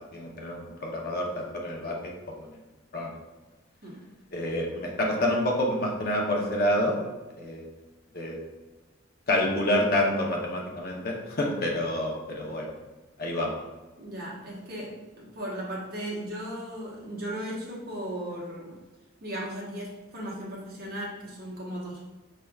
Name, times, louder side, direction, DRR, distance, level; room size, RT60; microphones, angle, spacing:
voice 1, 0.1-2.1 2.4-2.5 2.9-3.2 4.3-6.9 7.4-7.7 8.1-8.4 9.3-12.7 13.2-13.6, left 1 dB, 50° left, -1 dB, 0.8 m, -28 dB
voice 2, 14.0-18.8 19.2-22.0, right 1 dB, 50° right, -4 dB, 1.1 m, -36 dB
5.8 x 3.3 x 2.4 m, 1.2 s
head